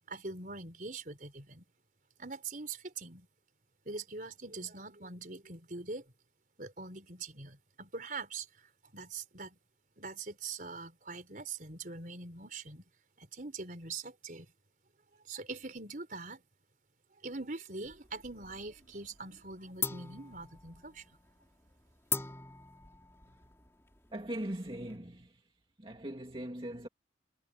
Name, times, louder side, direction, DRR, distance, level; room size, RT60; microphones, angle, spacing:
voice 1, 0.1-1.6 2.2-3.3 3.8-6.0 6.6-9.6 10.0-12.8 13.2-14.5 15.3-16.4 17.2-21.0, right 3 dB, 45° right, 4.9 m, -43 dB
sound 1, 17.8-18.7 19.0-19.4 19.8-25.0, left 4 dB, 15° left, 4.0 m, -41 dB
voice 2, 24.1-25.3 25.8-26.9, right 1 dB, 30° right, 2.6 m, -40 dB
head